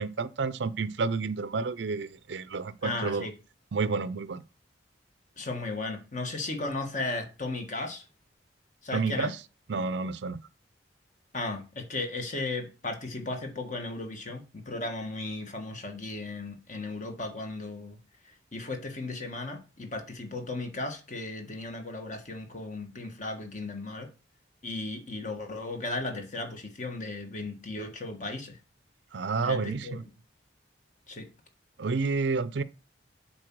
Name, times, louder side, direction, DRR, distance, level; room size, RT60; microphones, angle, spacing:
voice 1, 0.0-3.3 3.7-4.4 8.9-9.4 9.7-10.4 29.1-30.0 31.8-32.6, right 4 dB, 65° right, 0.5 m, -30 dB
voice 2, 2.8-3.3 5.4-8.0 8.8-9.3 11.3-18.0 18.5-24.1 24.6-28.6 29.4-30.0 31.1-31.3, left 2 dB, 40° left, 1.4 m, -35 dB
7.7 x 4.3 x 6.0 m
head